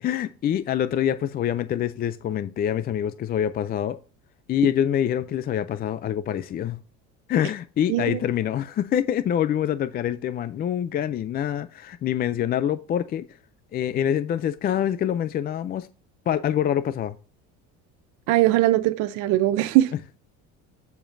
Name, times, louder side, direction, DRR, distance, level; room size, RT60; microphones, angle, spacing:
voice 1, 0.0-4.0 4.5-6.8 7.3-13.3 13.7-15.9 16.3-17.2, left 10 dB, 30° left, 0.4 m, -25 dB
voice 2, 7.9-8.2 18.3-19.9, right 15 dB, 70° right, 0.7 m, -20 dB
14.5 x 5.1 x 2.6 m
cardioid pair, 140°, 31 cm